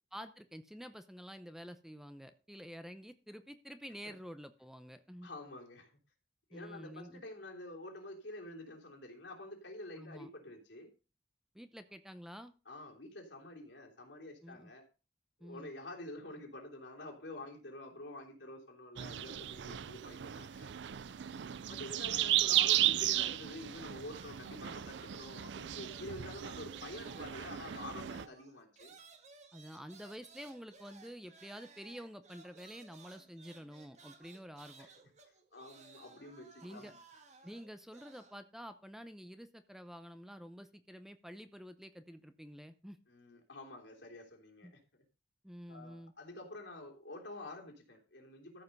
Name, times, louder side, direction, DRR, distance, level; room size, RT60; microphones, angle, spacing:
voice 1, 0.1-5.3 6.5-7.2 10.0-10.3 11.5-12.5 14.4-14.7 15.4-15.7 29.5-34.9 36.6-36.9 37.4-43.0 44.6-44.7 45.4-46.1, equal, 5° right, 10 dB, 0.7 m, -49 dB
voice 2, 5.2-5.9 6.5-10.9 12.6-14.9 15.4-20.7 21.7-28.9 34.8-34.9 35.5-37.0 43.1-44.8 45.7-48.6, left 2 dB, 75° left, 0 dB, 3.2 m, -48 dB
sound 1, 19.0-28.3, right 13 dB, 70° right, 0.4 m, -35 dB
sound 2, 24.1-26.2 26.4-38.4, right 4 dB, 40° right, 1.8 m, -59 dB
13.5 x 5.6 x 5.4 m, 0.33 s
head